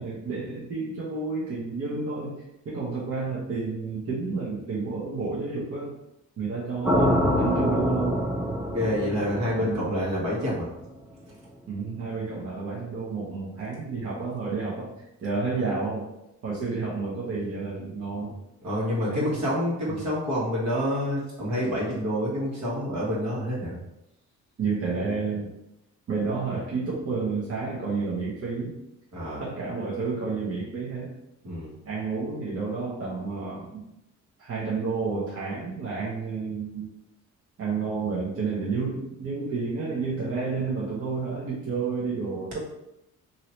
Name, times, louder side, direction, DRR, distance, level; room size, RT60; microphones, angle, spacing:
voice 1, 0.0-5.9 6.4-8.2 9.5-9.9 11.7-14.9 15.2-16.1 16.4-18.3 19.1-19.3 19.9-20.0 24.6-25.5 26.1-28.8 29.4-31.2 31.9-33.8 34.4-36.9 37.6-42.6, right 4 dB, 50° right, -6 dB, 0.9 m, -30 dB
sound 1, 6.8-10.9, equal, 5° right, 0.6 m, -26 dB
voice 2, 8.7-10.7 11.3-11.4 18.6-23.8 29.1-29.4 31.4-31.8, equal, 65° right, -5 dB, 1.4 m, -28 dB
2.9 x 2.7 x 3.0 m, 0.86 s
cardioid pair, 90°, 30 cm